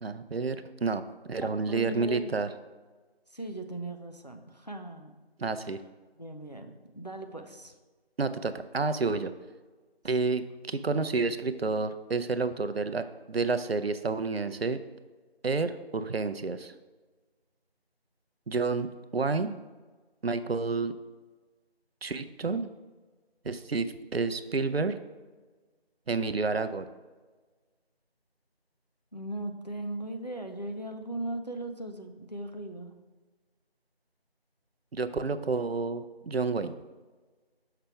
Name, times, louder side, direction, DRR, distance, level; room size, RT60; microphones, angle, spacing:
voice 1, 0.0-1.0 1.3-2.5 5.4-5.8 8.2-9.3 10.0-14.8 15.4-16.7 18.5-18.9 19.1-19.5 20.2-21.0 22.0-22.7 23.4-25.0 26.1-26.9 34.9-36.7, right 4 dB, 70° right, 11 dB, 0.5 m, -29 dB
voice 2, 1.4-2.3 3.3-5.1 6.2-7.7 29.1-32.9, right 1 dB, 40° left, 5 dB, 0.5 m, -38 dB
6.7 x 5.7 x 3.4 m, 1.3 s
figure-of-eight pair, 180°, 31 cm